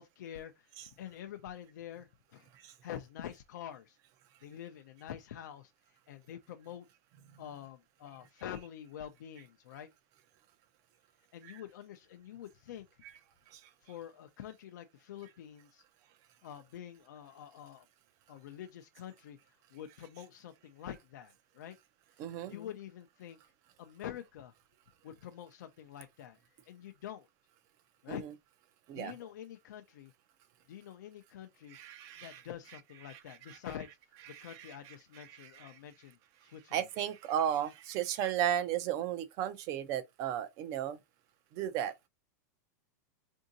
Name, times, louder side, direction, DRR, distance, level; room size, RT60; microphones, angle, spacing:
voice 1, 0.0-4.0 4.4-6.9 7.4-9.9 11.3-13.0 13.8-15.8 16.4-17.9 18.3-21.8 22.2-23.4 23.8-24.5 25.0-27.3 28.0-28.2 28.9-30.1 30.7-31.8 32.2-33.9 34.4-36.9, left 10 dB, 75° left, 0.5 m, -47 dB
voice 2, 22.2-22.5 28.1-28.3 28.9-29.1 31.7-32.3 33.5-33.6 34.3-34.5 35.4-35.7 36.7-41.0 41.5-41.9, right 10 dB, 35° right, 0.5 m, -34 dB
3.7 x 2.7 x 2.6 m
supercardioid pair, 165°, 10 cm